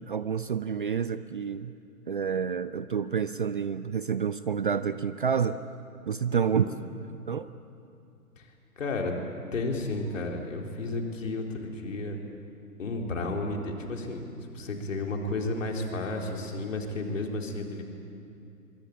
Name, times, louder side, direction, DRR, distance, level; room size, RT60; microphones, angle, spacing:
voice 1, 0.0-1.7 2.1-5.6 6.1-6.6 7.3-7.5, right 7 dB, 35° right, 13 dB, 0.5 m, -28 dB
voice 2, 6.3-6.8 8.4-8.5 8.8-9.1 9.5-12.2 12.8-14.3 14.5-17.8, left 2 dB, 55° left, 2 dB, 4.0 m, -32 dB
24.5 x 24.0 x 8.7 m, 2.6 s
figure-of-eight pair, 130°, 46 cm